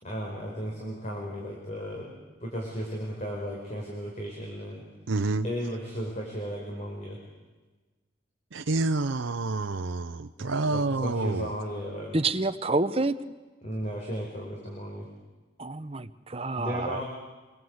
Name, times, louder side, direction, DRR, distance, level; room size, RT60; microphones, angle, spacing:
voice 1, 0.0-4.8 5.4-7.2 10.4-12.2 13.6-15.1 16.5-17.0, equal, 35° left, 4.8 m, -35 dB
voice 2, 5.1-5.4 8.5-11.3, right 3 dB, 90° right, 0.7 m, -28 dB
voice 3, 12.1-13.3 15.6-17.0, right 2 dB, 30° right, 0.9 m, -28 dB
25.5 x 23.0 x 8.0 m
head